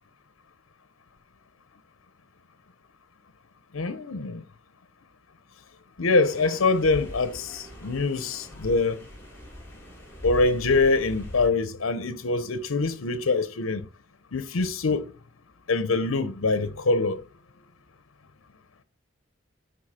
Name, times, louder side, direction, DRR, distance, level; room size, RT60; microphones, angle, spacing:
voice 1, 3.7-4.4 6.0-9.0 10.2-13.9 14.3-15.1 15.7-17.2, left 3 dB, 80° left, 0.7 m, -24 dB
sound 1, 6.2-11.5, equal, 10° left, 2.5 m, -41 dB
9.9 x 4.0 x 4.2 m
head